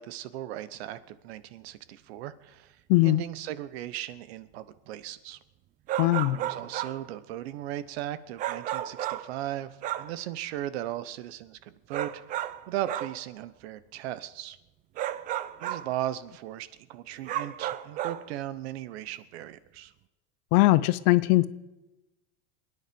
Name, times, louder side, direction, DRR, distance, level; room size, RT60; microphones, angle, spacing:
voice 1, 0.0-2.7 3.0-5.4 6.3-14.6 15.6-19.9, right 13 dB, 75° right, 15 dB, 1.1 m, -37 dB
voice 2, 2.9-3.2 6.0-6.4 20.5-21.5, left 19 dB, 45° left, 17 dB, 0.6 m, -20 dB
sound 1, 5.9-7.1 8.4-9.4 9.8-10.2 11.9-13.2 15.0-15.9 17.2-18.3, right 12 dB, 25° right, 0.5 m, -33 dB
27.0 x 10.0 x 5.2 m, 1.0 s
supercardioid pair, 165°, 32 cm